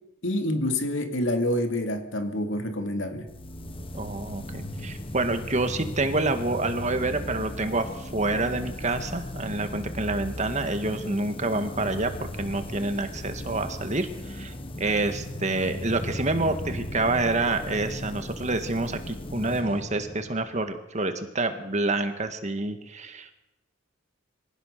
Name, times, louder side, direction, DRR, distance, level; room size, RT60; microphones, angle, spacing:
voice 1, 0.2-3.3, left 1 dB, 65° left, 6 dB, 2.6 m, -27 dB
sound 1, 3.3-20.8, left 1 dB, 25° left, 1.3 m, -37 dB
voice 2, 3.9-12.1 12.4-23.3, right 2 dB, 35° right, 8 dB, 1.9 m, -28 dB
24.0 x 17.0 x 6.8 m, 0.92 s
head